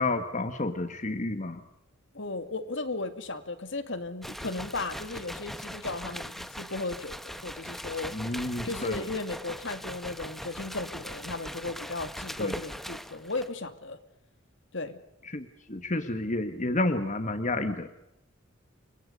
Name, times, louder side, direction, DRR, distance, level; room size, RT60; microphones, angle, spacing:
voice 1, 0.0-1.6 8.1-9.0 12.4-12.5 15.3-17.9, left 2 dB, 35° left, 9 dB, 1.4 m, -30 dB
voice 2, 2.1-8.1 8.6-14.0 14.7-15.0, left 3 dB, 65° left, 9 dB, 2.4 m, -35 dB
sound 1, 4.2-13.6, equal, ahead, 1.0 m, -40 dB
30.0 x 24.5 x 5.4 m, 0.85 s
head